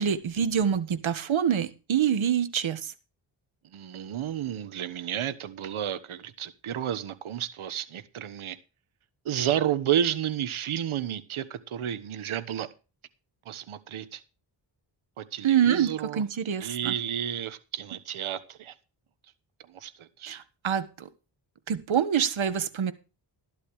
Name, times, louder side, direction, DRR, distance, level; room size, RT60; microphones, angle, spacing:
voice 1, 0.0-2.9 15.4-16.9 20.3-21.1 21.7-22.9, right 8 dB, 75° right, 1.6 m, -26 dB
voice 2, 3.7-8.6 9.2-12.7 13.4-14.2 15.2-16.2 16.6-18.7 19.7-20.4, right 10 dB, 90° right, 1.3 m, -31 dB
13.5 x 12.0 x 3.2 m
cardioid pair, 65°, 48 cm